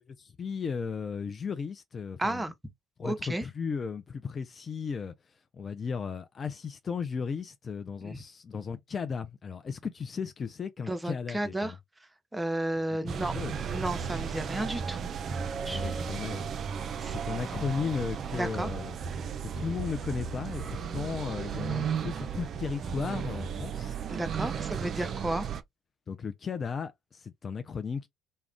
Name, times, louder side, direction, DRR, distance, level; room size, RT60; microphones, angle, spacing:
voice 1, 0.2-2.5 3.0-11.8 13.0-13.6 15.6-16.5 16.8-19.0 19.4-24.0 24.4-24.5 26.1-28.1, left 6 dB, 35° left, 0.4 m, -35 dB
voice 2, 2.2-2.5 3.0-3.4 8.0-8.2 10.9-11.7 12.3-13.3 13.7-15.1 15.6-15.9 17.0-17.2 18.3-18.7 24.1-25.5, right 1 dB, 10° right, 0.6 m, -32 dB
sound 1, 13.1-25.6, right 7 dB, 50° right, 0.4 m, -34 dB
2.4 x 2.1 x 3.4 m
hypercardioid pair, 60°, 0 cm